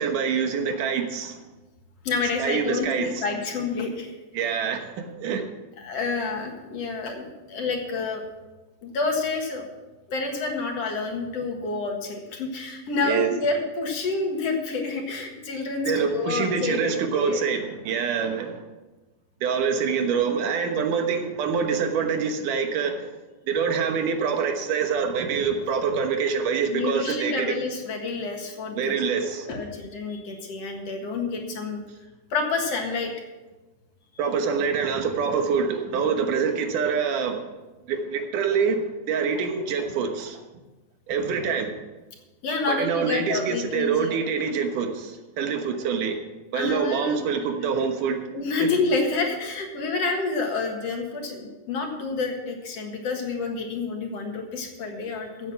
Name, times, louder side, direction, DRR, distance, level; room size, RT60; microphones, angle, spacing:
voice 1, 0.0-1.4 2.4-3.4 4.3-5.5 13.0-13.3 15.8-18.6 19.4-23.1 23.5-27.7 28.8-29.5 34.2-37.4 37.8-40.4 41.1-41.7 42.7-46.2 46.5-48.3 48.6-48.7, right 6 dB, 90° right, 5 dB, 2.8 m, -25 dB
voice 2, 2.0-4.1 5.8-8.2 8.8-9.6 10.1-17.4 26.7-29.0 29.2-31.8 32.3-33.1 42.4-44.2 46.5-47.3 48.3-55.5, left 3 dB, 55° left, 2 dB, 2.5 m, -28 dB
14.5 x 8.1 x 5.8 m, 1.1 s
omnidirectional pair, 3.6 m